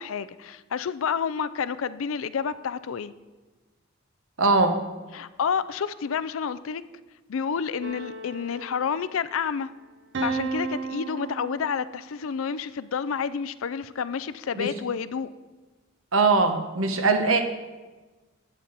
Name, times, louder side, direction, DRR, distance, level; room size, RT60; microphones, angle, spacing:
voice 1, 0.0-3.1 5.1-6.8 7.3-9.7 10.2-15.3, left 6 dB, 80° left, 15 dB, 0.4 m, -29 dB
voice 2, 4.4-4.7 14.6-14.7 16.1-17.4, right 3 dB, 80° right, 6 dB, 1.1 m, -21 dB
sound 1, 7.8-9.5 10.1-12.1, right 3 dB, 60° right, 0.8 m, -34 dB
12.0 x 8.7 x 4.0 m, 1.2 s
head